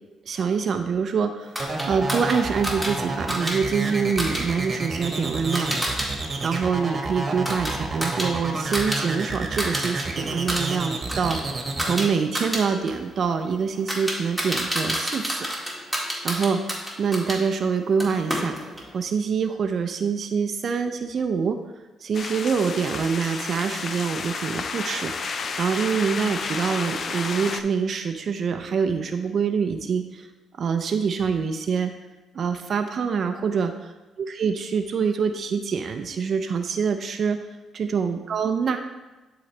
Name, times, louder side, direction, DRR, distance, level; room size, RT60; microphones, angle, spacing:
voice 1, 0.3-1.5 1.8-5.8 6.4-15.5 16.2-18.5 18.9-21.6 22.0-30.3 30.6-31.9 32.3-33.9 34.2-37.4 37.7-38.8, right 6 dB, 55° right, 7 dB, 0.5 m, -25 dB
sound 1, 1.5-6.1 6.4-9.0 9.3-10.0 10.3-17.4 18.0-18.9, equal, 5° left, 1.9 m, -30 dB
sound 2, 1.6-12.1, right 3 dB, 35° right, 1.2 m, -29 dB
sound 3, 22.1-27.6, left 5 dB, 50° left, 0.5 m, -31 dB
11.5 x 3.9 x 3.3 m, 1.1 s
cardioid pair, 90°, 0 cm